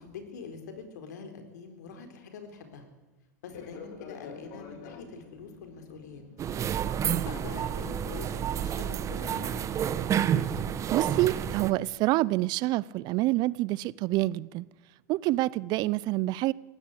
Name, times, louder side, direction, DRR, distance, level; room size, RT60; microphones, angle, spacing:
voice 1, 0.0-2.8 3.4-6.2 7.1-9.9, left 5 dB, 75° left, 4.3 m, -44 dB
Fixed-wing aircraft airplane, 3.4-9.9, left 5 dB, 60° left, 4.6 m, -50 dB
sound 1, 6.4-11.7, right 9 dB, 35° right, 1.3 m, -29 dB
voice 2, 10.9-14.6 15.1-16.5, right 18 dB, 50° right, 0.6 m, -27 dB
20.0 x 16.0 x 8.4 m
hypercardioid pair, 100°, 9 cm